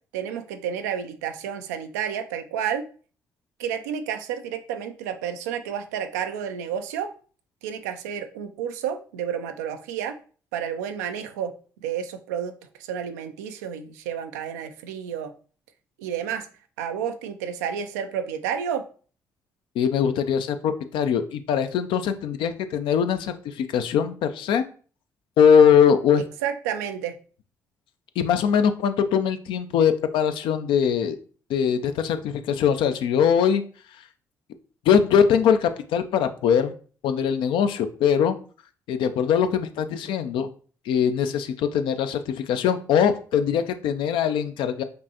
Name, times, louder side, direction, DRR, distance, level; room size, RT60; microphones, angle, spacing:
voice 1, 0.1-2.9 3.6-7.1 7.6-10.2 10.5-11.5 11.8-15.3 16.0-16.5 16.8-18.9 26.4-27.2, right 8 dB, 90° right, 7 dB, 0.4 m, -30 dB
voice 2, 19.8-24.7 25.4-26.2 28.2-31.1 31.5-33.6 34.9-36.7 37.0-38.4 38.9-40.5 40.9-44.8, left 7 dB, 70° left, 9 dB, 0.4 m, -21 dB
5.3 x 2.6 x 2.8 m, 0.41 s
hypercardioid pair, 50°, 9 cm